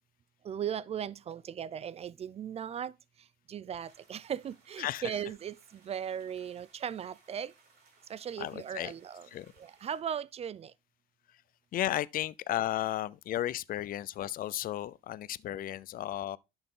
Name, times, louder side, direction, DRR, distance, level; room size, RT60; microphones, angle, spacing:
voice 1, 0.5-2.9 3.5-5.5 5.9-7.5 8.1-9.3 9.6-10.7, right 8 dB, 40° right, 0.4 m, -37 dB
sound 1, 3.8-10.0, right 4 dB, 70° right, 4.5 m, -64 dB
voice 2, 4.8-5.1 8.4-8.9 9.3-9.5 11.7-16.4, left 13 dB, 60° left, 0.6 m, -34 dB
11.0 x 6.1 x 3.8 m
cardioid pair, 110°, 17 cm